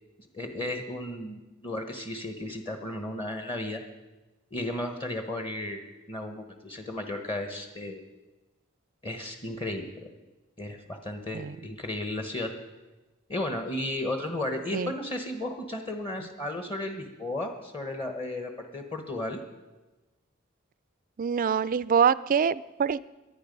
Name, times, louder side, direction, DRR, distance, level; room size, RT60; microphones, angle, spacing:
voice 1, 0.3-3.8 4.5-5.8 6.1-8.0 9.0-10.1 10.6-12.5 13.3-19.4, left 1 dB, 25° left, 5 dB, 1.2 m, -34 dB
voice 2, 21.2-23.0, right 7 dB, 40° right, 18 dB, 0.4 m, -25 dB
22.5 x 9.2 x 5.3 m, 1.1 s
head